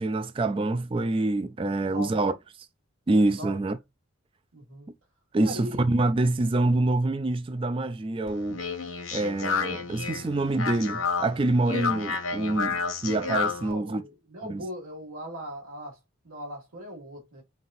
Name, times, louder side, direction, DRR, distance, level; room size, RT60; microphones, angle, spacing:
voice 1, 0.0-2.3 3.1-3.8 5.3-8.6 9.1-12.8 13.0-14.0 14.4-14.6, right 2 dB, 25° right, 0.3 m, -26 dB
voice 2, 1.8-2.3 3.4-3.6 4.5-4.9 5.4-5.9 10.2-10.5 13.6-16.0 16.2-17.4, equal, 85° right, 2.0 m, -39 dB
Speech, 8.3-13.7, left 5 dB, 75° left, 1.2 m, -30 dB
4.0 x 3.9 x 2.5 m
head